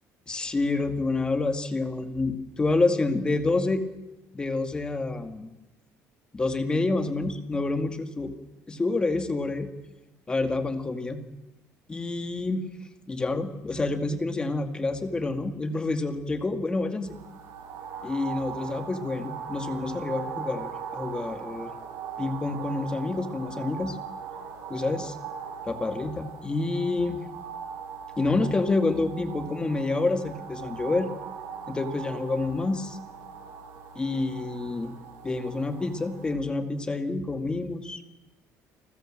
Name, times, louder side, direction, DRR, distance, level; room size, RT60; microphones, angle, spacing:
voice 1, 0.3-3.8 4.3-5.5 6.3-8.3 8.7-9.7 10.3-11.2 11.9-12.7 13.1-17.2 18.0-21.7 22.2-24.0 24.7-25.1 25.6-27.2 28.2-31.1 31.7-33.0 34.0-34.9 35.2-38.0, left 3 dB, 15° left, 6 dB, 2.1 m, -28 dB
sound 1, 17.0-36.3, right 7 dB, 75° right, 7.7 m, -40 dB
30.0 x 20.0 x 7.7 m, 1.0 s
cardioid pair, 160°, 6 cm